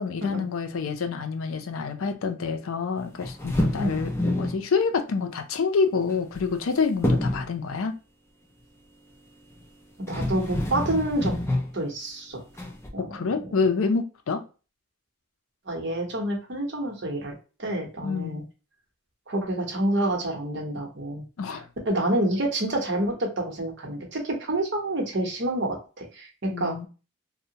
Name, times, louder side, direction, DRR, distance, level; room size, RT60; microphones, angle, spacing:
voice 1, 0.0-4.1 4.4-7.9 13.0-14.4 18.0-18.4 21.4-21.6 26.5-26.9, left 5 dB, 80° left, 0.5 m, -27 dB
sound 1, 3.2-4.6 6.1-6.7 7.0-7.5 9.6-9.7 10.1-11.7 12.6-12.9, left 1 dB, 10° left, 0.4 m, -27 dB
voice 2, 10.1-11.4 11.7-12.4 12.9-13.3 15.7-18.4 19.3-21.2 21.5-21.6 21.8-26.7, right 1 dB, 55° right, 0.8 m, -28 dB
2.7 x 2.1 x 2.7 m
head